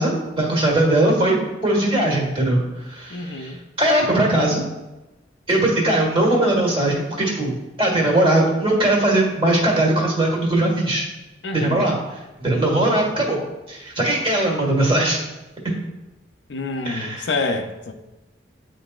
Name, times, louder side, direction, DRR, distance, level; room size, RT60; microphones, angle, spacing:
voice 1, 0.0-4.6 5.5-11.0 11.5-12.0 12.4-13.4 13.7-15.2 16.8-17.3, right 1 dB, 30° right, -2 dB, 1.6 m, -20 dB
voice 2, 3.1-3.6 11.4-11.9 16.5-17.9, left 3 dB, 75° left, 5 dB, 0.5 m, -27 dB
9.9 x 3.9 x 2.4 m, 1.0 s
head